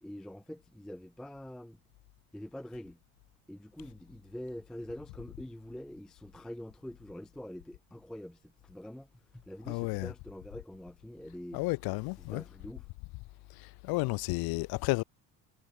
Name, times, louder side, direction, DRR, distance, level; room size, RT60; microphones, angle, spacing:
voice 1, 0.0-1.8 2.3-3.0 3.5-11.6 12.2-12.9, left 1 dB, ahead, 0.4 m, -45 dB
voice 2, 9.7-10.1 11.5-12.4 13.6-15.0, left 25 dB, 65° left, 0.5 m, -32 dB
cardioid pair, 170°, 40 cm